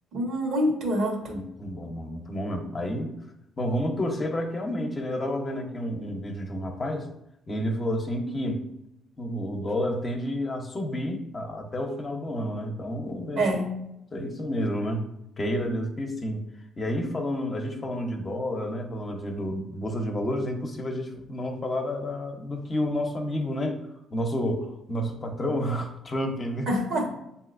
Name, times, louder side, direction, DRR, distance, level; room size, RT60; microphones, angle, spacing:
voice 1, 0.1-1.4 13.4-13.7 26.7-27.2, equal, 70° right, 1 dB, 1.4 m, -26 dB
voice 2, 1.3-3.1 3.6-7.1 7.5-8.6 9.2-13.4 14.1-15.0 15.4-16.4 16.8-23.8 24.1-26.7, equal, 35° left, 3 dB, 0.9 m, -30 dB
7.4 x 2.8 x 2.6 m, 0.83 s
supercardioid pair, 65°, 0 cm